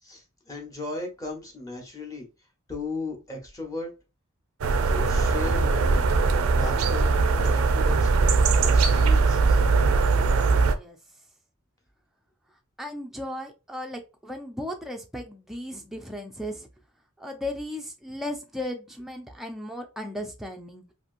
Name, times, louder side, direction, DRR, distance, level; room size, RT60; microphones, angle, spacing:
voice 1, 0.0-2.3 2.7-3.9 4.9-6.1 6.5-8.4 8.7-9.6, left 2 dB, 15° left, 1 dB, 0.8 m, -36 dB
sound 1, 4.6-10.8, right 4 dB, 75° right, 0.4 m, -21 dB
voice 2, 10.7-11.0 12.5-16.7 17.2-20.8, left 1 dB, ahead, 2 dB, 0.3 m, -36 dB
2.8 x 2.6 x 2.4 m, 0.28 s
head